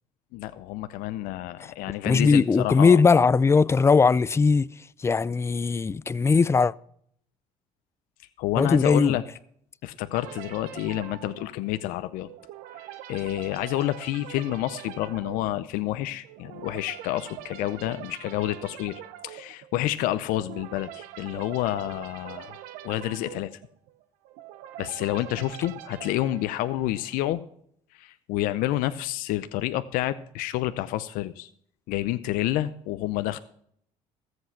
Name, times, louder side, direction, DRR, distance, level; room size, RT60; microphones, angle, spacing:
voice 1, 0.3-3.0 8.4-9.2 9.8-12.3 13.1-23.5 24.8-27.4 27.9-31.5 31.9-33.4, left 14 dB, 80° left, 0.6 m, -29 dB
voice 2, 2.0-4.7 5.0-6.7 8.6-9.2, left 4 dB, 20° left, 0.4 m, -19 dB
sound 1, 10.1-27.3, right 13 dB, 85° right, 0.8 m, -44 dB
14.0 x 7.9 x 5.8 m
supercardioid pair, 90°, 14 cm